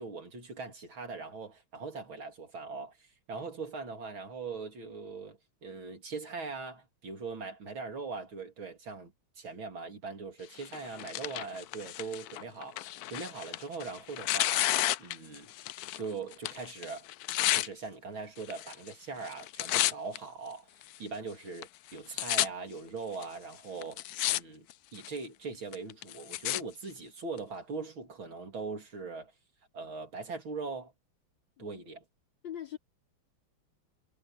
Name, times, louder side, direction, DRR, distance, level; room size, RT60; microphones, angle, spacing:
voice 1, 0.0-3.0 3.3-14.7 15.0-15.5 16.0-17.1 17.5-20.7 21.0-24.7 24.9-29.3 29.7-30.9 31.6-32.0, right 4 dB, 75° right, 3.9 m, -41 dB
Tearing, 10.6-16.1 16.3-17.7 18.4-18.9 19.2-20.2 20.8-20.9 21.6-21.7 21.9-22.5 23.2-23.3 23.8-24.4 24.7-25.2 25.7-26.6 27.4-27.5, left 15 dB, 85° left, 0.8 m, -31 dB
voice 2, 32.4-32.8, left 10 dB, 65° left, 3.7 m, -42 dB
omnidirectional pair, 2.2 m